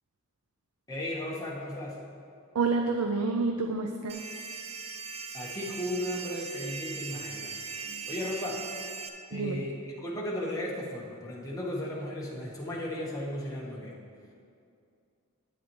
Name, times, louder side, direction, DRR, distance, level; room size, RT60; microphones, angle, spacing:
voice 1, 0.9-2.0 5.3-7.6 8.1-8.6 9.3-14.0, left 1 dB, 15° left, -4 dB, 1.2 m, -35 dB
voice 2, 2.5-4.2 7.8-8.1 9.3-9.7, right 3 dB, 85° right, 4 dB, 0.5 m, -29 dB
sound 1, 4.1-9.1, right 4 dB, 30° right, 0.5 m, -39 dB
10.0 x 8.0 x 3.1 m, 2.4 s
head